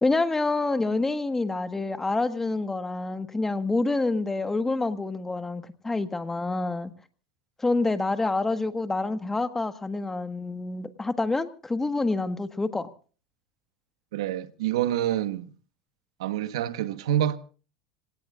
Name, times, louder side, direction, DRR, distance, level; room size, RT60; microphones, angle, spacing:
voice 1, 0.0-6.9 7.6-12.9, left 3 dB, 10° left, 1.5 m, -27 dB
voice 2, 14.1-15.5 16.2-17.4, right 11 dB, 80° right, 1.3 m, -27 dB
26.5 x 17.5 x 2.5 m
supercardioid pair, 110°, 3 cm